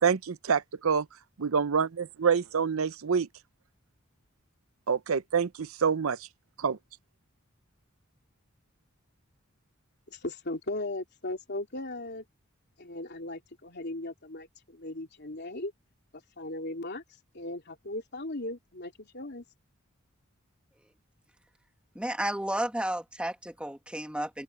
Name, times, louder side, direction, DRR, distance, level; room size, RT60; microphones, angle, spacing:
voice 1, 0.0-1.1 1.4-3.3 4.9-6.2 6.6-6.8, right 6 dB, 85° right, 0.7 m, -26 dB
voice 2, 10.1-12.2 12.8-15.7 16.4-17.0 17.3-19.4, left 2 dB, 55° left, 3.3 m, -37 dB
voice 3, 22.0-24.4, right 1 dB, 5° right, 1.9 m, -32 dB
open air
head